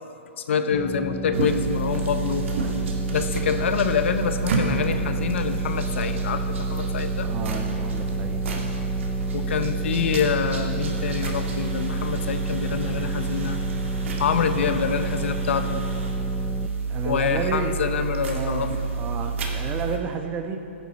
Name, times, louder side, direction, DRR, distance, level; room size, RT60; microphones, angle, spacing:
voice 1, 0.5-2.5 3.1-7.3 9.3-13.6 14.2-15.8 17.0-18.7, left 6 dB, 65° left, 9 dB, 0.9 m, -26 dB
sound 1, 0.7-16.7, left 1 dB, 15° left, 0.6 m, -33 dB
sound 2, 1.3-20.0, right 4 dB, 70° right, 2.2 m, -28 dB
voice 2, 7.2-8.4 16.9-17.7 18.3-20.7, right 5 dB, 25° right, 6 dB, 1.0 m, -31 dB
Water, 10.8-16.1, right 2 dB, 90° right, 2.7 m, -44 dB
15.5 x 10.0 x 4.2 m, 2.7 s
hypercardioid pair, 135°, 7 cm